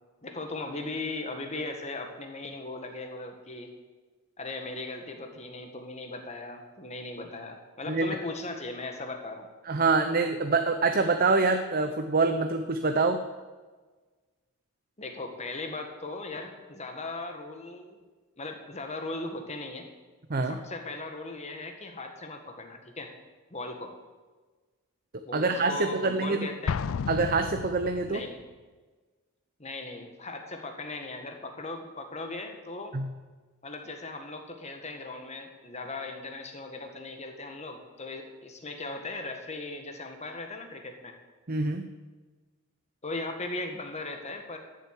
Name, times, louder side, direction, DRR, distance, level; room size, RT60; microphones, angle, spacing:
voice 1, 0.2-3.7 4.4-9.5 15.0-18.0 18.4-19.9 20.4-23.1 23.5-23.9 25.2-26.8 28.0-28.4 29.6-32.9 33.6-41.1 43.0-44.6, left 2 dB, 30° left, 4 dB, 1.7 m, -38 dB
voice 2, 9.7-13.2 20.3-20.6 25.3-26.5 27.1-28.2 32.9-33.1 41.5-41.9, right 3 dB, 40° right, 7 dB, 0.7 m, -25 dB
Explosion, 26.7-28.3, left 6 dB, 65° left, 0.4 m, -32 dB
13.0 x 7.7 x 8.2 m, 1.3 s
head